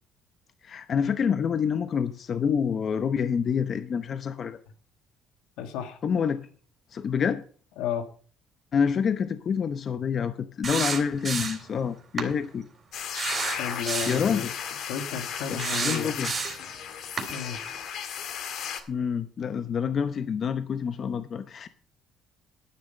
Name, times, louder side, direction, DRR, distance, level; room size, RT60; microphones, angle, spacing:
voice 1, 0.6-4.6 6.0-6.5 6.9-7.4 8.7-12.7 14.1-14.5 15.5-16.3 18.9-21.7, left 7 dB, 40° left, 11 dB, 0.8 m, -27 dB
voice 2, 5.6-6.0 7.8-8.1 13.6-14.5 14.9-16.1 17.3-17.6, left 8 dB, 85° left, 8 dB, 1.9 m, -32 dB
sound 1, 10.6-11.7 12.2-12.3 13.1-14.3 15.6-16.7 17.2-17.3, right 5 dB, 30° right, 3.4 m, -30 dB
sound 2, 12.9-18.8, left 8 dB, 65° left, 1.9 m, -35 dB
11.0 x 9.4 x 5.5 m, 0.43 s
cardioid pair, 115°, 0 cm